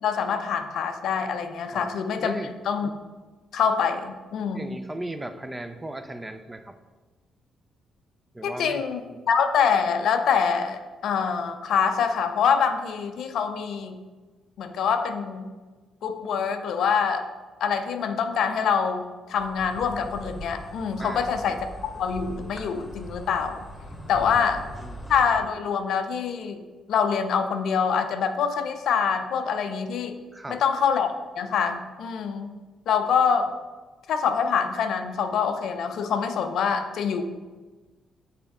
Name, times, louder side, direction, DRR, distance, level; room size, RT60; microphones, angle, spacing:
voice 1, 0.0-2.4 2.7-2.9 3.5-4.8 8.4-9.0 9.3-14.0 14.6-15.5 16.0-17.2 17.6-21.6 21.8-23.6 24.1-24.6 25.1-30.2 30.5-31.1 31.4-32.5 32.9-33.5 34.1-37.2, left 6 dB, 65° left, 7 dB, 0.5 m, -25 dB
voice 2, 2.2-2.5 4.5-6.8 8.3-8.8 9.1-9.2 21.0-21.3 24.2-24.3 24.8-25.0 30.3-30.6, right 1 dB, 15° right, 9 dB, 0.5 m, -36 dB
Insect, 19.4-25.4, equal, 15° left, 1.3 m, -41 dB
6.9 x 4.2 x 3.7 m, 1.3 s
hypercardioid pair, 45°, 0 cm